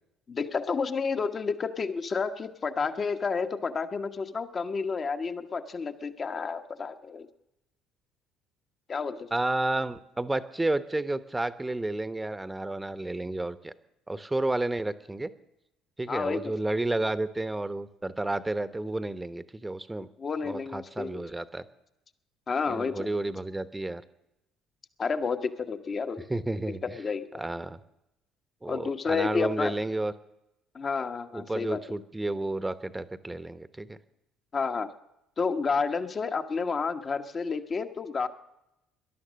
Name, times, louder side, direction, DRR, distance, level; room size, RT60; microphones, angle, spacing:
voice 1, 0.3-7.3 8.9-9.3 16.1-16.5 20.2-21.2 22.5-23.1 25.0-26.3 26.8-27.4 28.6-29.7 30.7-31.8 34.5-34.9 35.4-38.3, left 5 dB, 40° left, 9 dB, 1.2 m, -30 dB
voice 2, 9.3-13.7 14.1-15.3 16.0-20.1 20.4-21.6 22.7-24.0 26.3-26.8 27.4-27.8 28.6-30.1 31.3-34.0, right 2 dB, 15° right, 13 dB, 1.0 m, -31 dB
18.5 x 11.5 x 6.4 m, 0.87 s
hypercardioid pair, 55°, 0 cm